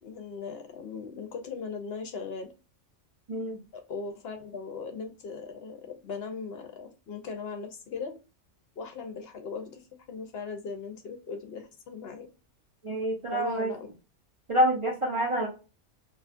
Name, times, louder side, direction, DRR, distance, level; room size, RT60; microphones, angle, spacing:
voice 1, 0.0-2.5 3.7-8.1 8.8-12.3 13.3-13.9, left 5 dB, 65° left, 6 dB, 0.8 m, -38 dB
voice 2, 3.3-3.6 12.8-13.7 14.5-15.5, right 1 dB, 40° right, -2 dB, 0.4 m, -27 dB
2.6 x 2.3 x 2.4 m, 0.31 s
omnidirectional pair, 1.3 m